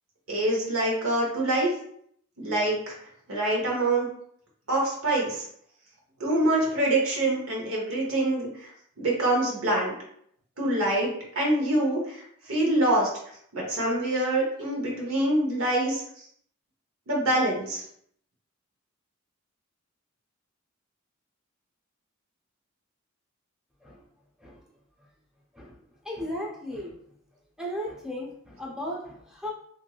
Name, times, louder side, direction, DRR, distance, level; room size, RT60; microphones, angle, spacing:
voice 1, 0.3-1.7 2.4-2.9 3.3-4.1 4.7-5.4 6.2-8.7 9.0-9.9 10.6-12.2 12.5-13.1 13.5-16.0 17.1-17.8, right 1 dB, 70° right, -3 dB, 1.0 m, -25 dB
voice 2, 26.0-27.0 27.6-29.5, left 1 dB, 5° right, -2 dB, 0.5 m, -35 dB
2.9 x 2.7 x 2.3 m, 0.67 s
head